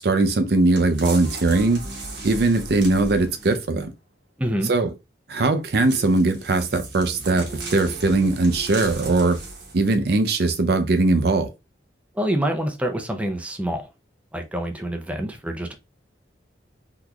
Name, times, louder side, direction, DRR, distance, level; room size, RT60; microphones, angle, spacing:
voice 1, 0.0-1.8 2.2-3.9 4.6-4.9 5.3-7.4 7.7-9.4 9.7-11.5, right 2 dB, 60° right, 0.5 m, -20 dB
sound 1, 0.8-3.7 5.7-9.9 10.5-10.6, right 2 dB, 85° right, 1.2 m, -36 dB
voice 2, 4.4-4.7 12.2-13.8 14.3-15.7, equal, 10° right, 0.5 m, -26 dB
3.8 x 2.9 x 2.2 m
head